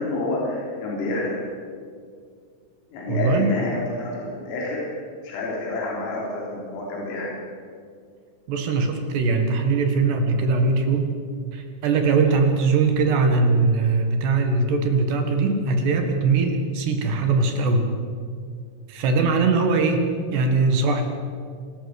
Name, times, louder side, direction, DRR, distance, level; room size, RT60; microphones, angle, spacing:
voice 1, 0.0-1.4 2.9-4.9 5.2-7.4, left 2 dB, 85° left, -3 dB, 6.0 m, -28 dB
voice 2, 3.1-3.5 8.5-11.1 11.5-17.9 18.9-21.0, right 4 dB, 65° right, 5 dB, 3.5 m, -21 dB
27.5 x 13.0 x 8.1 m, 2.1 s
omnidirectional pair, 5.8 m